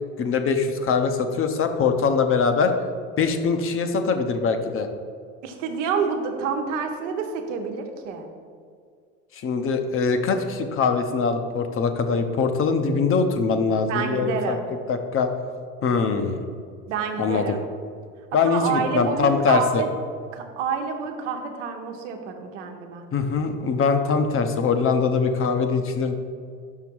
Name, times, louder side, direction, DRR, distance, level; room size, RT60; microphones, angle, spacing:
voice 1, 0.2-2.7 3.2-4.9 9.4-14.6 14.9-15.3 15.8-16.4 17.2-17.5 18.3-19.8 23.1-26.2, left 5 dB, 35° left, 7 dB, 0.8 m, -22 dB
voice 2, 5.4-8.3 13.9-14.6 16.9-17.6 18.4-19.9 20.3-23.0, right 6 dB, 80° right, 4 dB, 1.1 m, -28 dB
5.8 x 5.7 x 4.6 m, 2.2 s
supercardioid pair, 95°, 36 cm